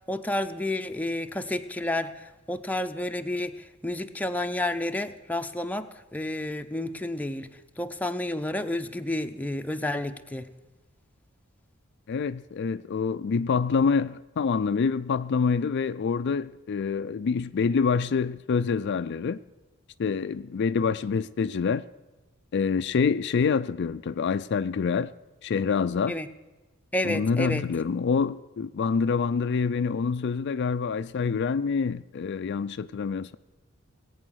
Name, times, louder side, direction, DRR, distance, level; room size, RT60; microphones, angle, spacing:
voice 1, 0.1-3.5 3.8-7.5 7.8-10.5 26.1-26.3 26.9-27.6, left 1 dB, 5° left, 0.6 m, -30 dB
voice 2, 12.1-19.4 20.0-21.8 22.5-25.1 25.4-26.2 27.0-33.4, left 5 dB, 55° left, 0.4 m, -26 dB
19.0 x 8.7 x 6.3 m
head